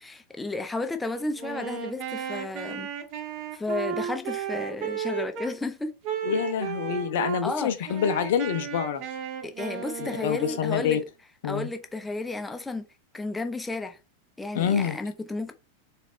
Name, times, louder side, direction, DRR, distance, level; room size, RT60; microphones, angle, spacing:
voice 1, 0.0-2.9 3.5-5.9 7.4-7.7 9.4-11.0 11.5-12.9 13.1-14.0 14.4-15.5, left 2 dB, 10° left, 0.6 m, -32 dB
Wind instrument woodwind instrument, 1.4-5.5 6.0-7.4 7.8-11.1, right 8 dB, 40° right, 0.9 m, -34 dB
voice 2, 6.2-9.0 10.2-11.0 11.4-11.7 14.5-15.0, left 8 dB, 55° left, 0.6 m, -26 dB
4.0 x 2.4 x 3.5 m
figure-of-eight pair, 90°, 0 cm